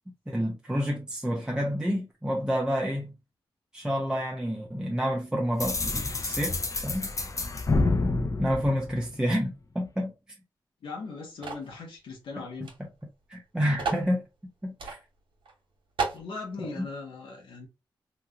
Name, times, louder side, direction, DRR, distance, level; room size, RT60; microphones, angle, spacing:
voice 1, 0.3-3.2 3.7-7.1 8.4-10.1 12.6-12.9 13.3-14.3 14.6-15.0 16.6-16.9, equal, 10° right, 0.7 m, -29 dB
sound 1, 5.6-9.5, left 3 dB, 40° left, 0.7 m, -28 dB
voice 2, 10.8-12.7 16.1-17.7, left 4 dB, 85° left, 1.0 m, -39 dB
sound 2, 11.4-11.7 12.6-12.7 13.0-13.1 13.8-14.1 14.8-15.0 15.4-15.5 16.0-16.3, right 5 dB, 75° right, 1.2 m, -31 dB
3.0 x 2.4 x 2.9 m
cardioid pair, 55°, 9 cm